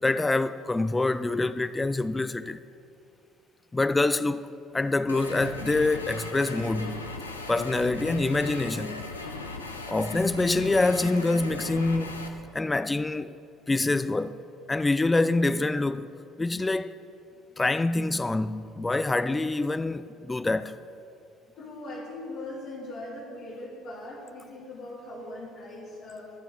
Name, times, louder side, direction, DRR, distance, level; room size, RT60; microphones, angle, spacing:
voice 1, 0.0-2.6 3.7-4.5 4.7-7.0 7.5-9.1 9.9-12.3 12.5-13.3 13.7-14.4 14.7-16.1 16.4-16.9 17.6-20.8, left 2 dB, 15° left, 0.3 m, -26 dB
sound 1, 5.1-12.3, left 3 dB, 85° left, 0.6 m, -38 dB
voice 2, 21.6-26.3, left 1 dB, 55° left, 1.5 m, -40 dB
13.0 x 4.5 x 7.5 m
figure-of-eight pair, 55°, 0 cm